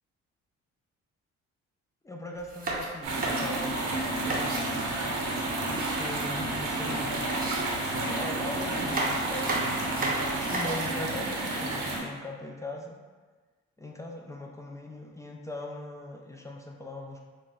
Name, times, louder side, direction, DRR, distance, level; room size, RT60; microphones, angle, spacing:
voice 1, 2.0-4.8 5.9-7.3 8.0-13.0 13.8-17.2, left 1 dB, 10° left, 0 dB, 0.3 m, -40 dB
sound 1, 2.4-4.7 5.2-6.6 6.8-6.9 7.3-8.3 8.7-10.9, right 2 dB, 30° right, 0.6 m, -34 dB
sound 2, 3.0-12.0, right 2 dB, 80° right, 0.7 m, -30 dB
4.0 x 2.1 x 2.3 m, 1.4 s
cardioid pair, 90°, 30 cm